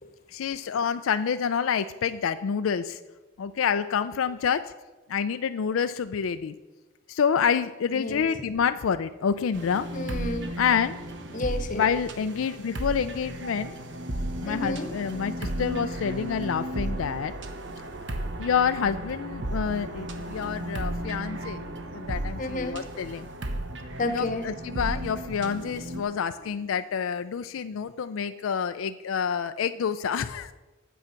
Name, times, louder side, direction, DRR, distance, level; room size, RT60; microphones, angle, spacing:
voice 1, 0.3-3.0 3.4-4.7 5.1-6.5 7.1-9.9 10.6-11.0 11.7-13.8 14.4-17.3 18.4-23.3 24.1-30.5, left 7 dB, 85° left, 11 dB, 0.4 m, -28 dB
voice 2, 7.9-8.3 9.9-10.5 11.3-11.9 14.4-14.9 22.4-22.8 24.0-24.4, left 2 dB, 40° left, 7 dB, 0.9 m, -31 dB
sound 1, 9.5-26.0, right 1 dB, 60° right, 0.9 m, -34 dB
9.3 x 7.2 x 5.8 m, 1.2 s
head